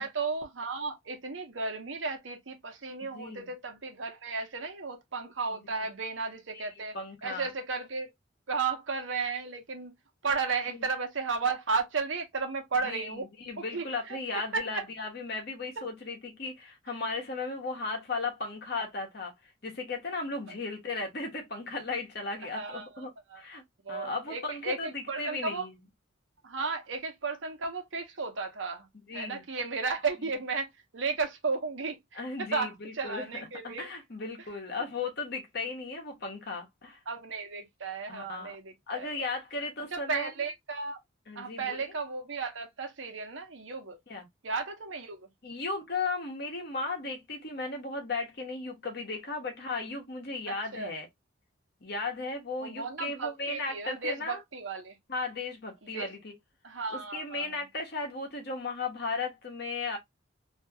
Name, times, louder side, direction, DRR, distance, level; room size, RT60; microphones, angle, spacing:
voice 1, 0.0-6.9 7.2-8.1 8.5-9.9 10.2-13.3 13.6-14.8 22.5-23.4 23.8-25.7 26.4-28.9 29.1-33.9 37.1-39.1 39.9-41.0 41.3-44.0 44.4-45.3 50.5-50.9 52.6-55.0 55.8-56.1 56.6-57.5, right 4 dB, 80° right, 0.9 m, -34 dB
voice 2, 3.0-3.5 6.5-6.7 6.9-7.5 10.7-10.8 12.8-19.3 19.6-23.1 23.4-23.6 23.9-25.7 29.1-29.4 32.2-37.0 38.1-38.6 38.9-40.3 41.3-41.8 44.1-44.3 45.4-51.1 51.8-54.4 55.1-56.3 56.9-60.0, left 3 dB, 55° left, 1.1 m, -36 dB
2.8 x 2.4 x 2.7 m
head